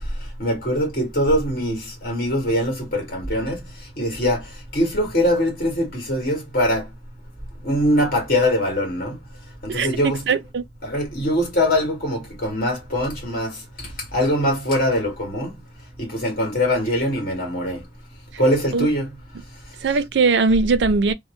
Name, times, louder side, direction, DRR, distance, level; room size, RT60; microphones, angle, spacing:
voice 1, 0.4-3.6 4.0-4.4 4.7-6.9 7.6-9.1 9.6-10.3 10.8-15.5 16.0-17.8 18.4-19.1, equal, 55° left, 1.7 m, -22 dB
voice 2, 9.7-10.6 18.7-18.9 19.8-21.1, right 4 dB, 75° right, 0.4 m, -20 dB
3.0 x 2.1 x 3.1 m
head